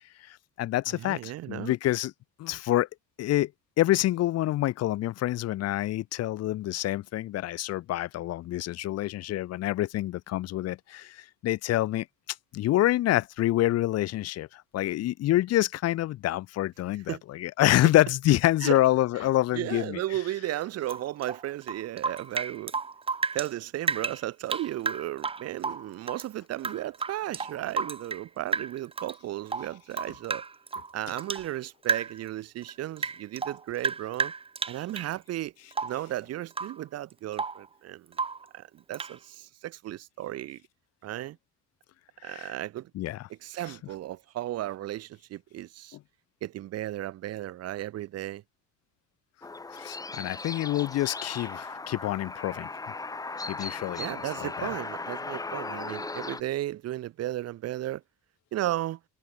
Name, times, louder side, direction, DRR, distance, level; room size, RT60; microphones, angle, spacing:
voice 1, 0.2-2.1 2.4-2.9 3.2-3.5 3.8-12.1 12.5-20.0 42.2-42.5 42.9-43.3 49.8-52.7 53.5-54.7, left 15 dB, 50° left, 1.7 m, -27 dB
voice 2, 0.9-1.7 17.1-17.2 18.6-18.8 19.5-22.7 23.3-30.4 30.9-34.3 34.7-35.5 35.8-38.2 38.5-40.6 41.0-41.4 42.2-42.9 43.3-46.0 46.4-48.4 54.0-58.0 58.5-59.0, right 14 dB, 50° right, 2.6 m, -34 dB
Rain / Drip, 20.8-23.5 23.8-26.3 26.6-28.3 28.5-29.2 29.5-31.5 31.8-32.3 32.6-35.1 35.7-36.1 36.5-36.8 37.1-37.7 38.1-38.5 38.9-39.2, right 5 dB, 15° right, 3.1 m, -32 dB
sound 1, 49.4-56.4, left 3 dB, 10° left, 2.1 m, -37 dB
cardioid pair, 175°, 32 cm